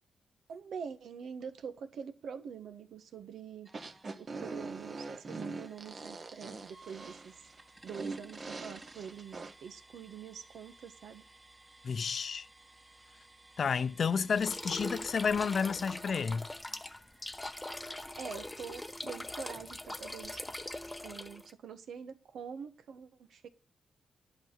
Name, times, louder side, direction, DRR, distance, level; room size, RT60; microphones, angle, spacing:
voice 1, 0.5-3.7 4.2-7.3 7.8-11.2 18.2-20.4 21.0-23.5, right 7 dB, 85° right, 1.3 m, -45 dB
sound 1, 3.6-19.3, right 2 dB, 15° right, 2.6 m, -58 dB
sound 2, 3.7-9.5, right 3 dB, 40° right, 1.2 m, -42 dB
voice 2, 11.8-12.5 13.6-16.5, left 6 dB, 55° left, 0.6 m, -31 dB
sound 3, 14.3-21.5, left 1 dB, 10° left, 0.8 m, -42 dB
11.5 x 5.0 x 7.5 m
cardioid pair, 105°, 0 cm